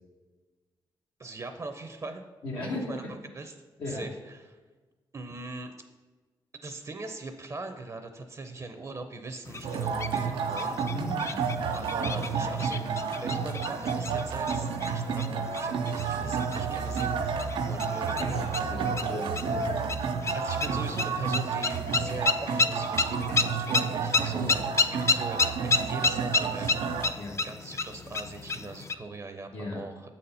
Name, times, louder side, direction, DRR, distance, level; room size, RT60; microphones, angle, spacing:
voice 1, 1.2-2.2 2.6-3.0 3.3-3.5 3.9-4.1 5.1-5.8 6.5-10.8 11.7-12.8 13.2-17.2 17.7-18.2 20.3-26.9 27.4-30.0, right 3 dB, 40° right, 7 dB, 0.6 m, -41 dB
voice 2, 2.4-3.0 3.8-4.0 10.9-11.7 17.8-19.7 23.3-23.4 24.4-24.7 27.2-27.4 29.5-29.8, left 1 dB, 85° left, -4 dB, 1.2 m, -37 dB
sound 1, 9.5-29.0, left 3 dB, 35° left, 0.4 m, -32 dB
sound 2, 9.6-27.1, right 5 dB, 90° right, 0.5 m, -31 dB
7.3 x 4.2 x 5.4 m, 1.3 s
cardioid pair, 80°, 8 cm